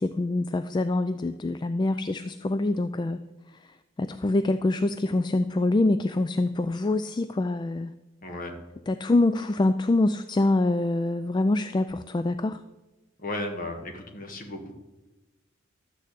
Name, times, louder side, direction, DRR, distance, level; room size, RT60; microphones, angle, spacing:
voice 1, 0.0-3.2 3.5-7.9 8.9-12.6, left 2 dB, 20° left, 11 dB, 0.3 m, -25 dB
voice 2, 8.2-8.6 13.2-14.7, left 1 dB, 45° left, 4 dB, 1.7 m, -35 dB
12.5 x 6.6 x 8.4 m, 1.1 s
head